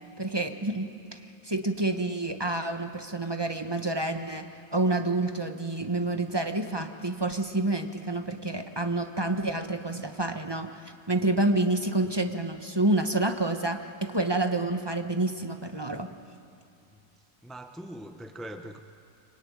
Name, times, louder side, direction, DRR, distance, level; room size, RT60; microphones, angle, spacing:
voice 1, 0.2-0.9 1.4-10.8 11.1-16.1, right 2 dB, 15° right, 6 dB, 1.0 m, -28 dB
voice 2, 17.4-18.8, right 1 dB, ahead, 6 dB, 0.4 m, -41 dB
24.0 x 24.0 x 9.6 m, 2.4 s
omnidirectional pair, 2.0 m